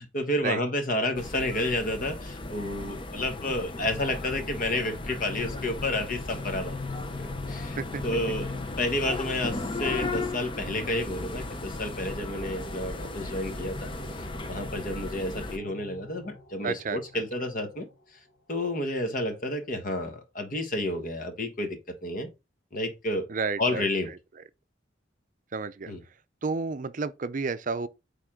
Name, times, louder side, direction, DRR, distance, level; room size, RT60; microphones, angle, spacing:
voice 1, 0.0-6.8 7.2-7.8 8.0-13.9 14.5-17.9 18.5-22.3 22.7-23.3 23.6-24.1 25.9-26.0, left 1 dB, 45° left, 1.3 m, -30 dB
sound 1, 1.2-15.6, left 2 dB, 25° left, 0.7 m, -36 dB
sound 2, 3.4-17.9, left 3 dB, 85° left, 1.2 m, -43 dB
voice 2, 16.6-17.2 23.3-23.9 25.5-25.9 26.4-27.9, right 4 dB, 45° right, 0.5 m, -31 dB
9.2 x 3.6 x 3.7 m
head